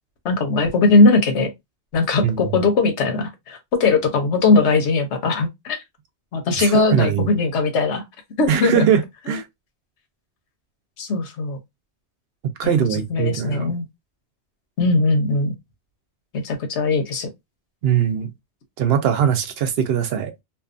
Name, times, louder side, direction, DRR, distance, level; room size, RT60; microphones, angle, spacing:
voice 1, 0.2-1.5 1.9-5.8 6.3-8.0 8.4-8.8 11.0-11.6 12.6-13.8 14.8-15.5 16.3-17.3, left 3 dB, 85° left, 1.0 m, -19 dB
voice 2, 2.2-2.6 6.6-7.3 8.5-9.5 12.6-13.7 17.8-18.3 18.8-20.3, right 8 dB, 70° right, 0.8 m, -21 dB
2.6 x 2.3 x 2.4 m
omnidirectional pair, 1.1 m